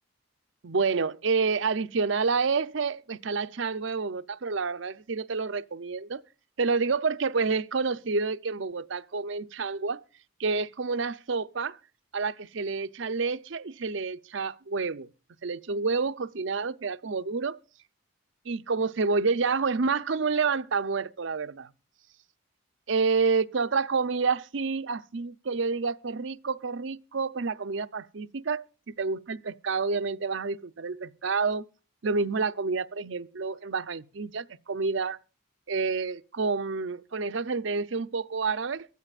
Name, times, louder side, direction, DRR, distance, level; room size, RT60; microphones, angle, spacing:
voice 1, 0.6-6.2 6.6-10.0 10.4-11.8 12.1-15.1 15.4-17.6 18.5-21.7 22.9-31.6 32.0-35.2 35.7-38.9, right 4 dB, 60° right, 0.6 m, -29 dB
23.0 x 14.0 x 2.4 m
head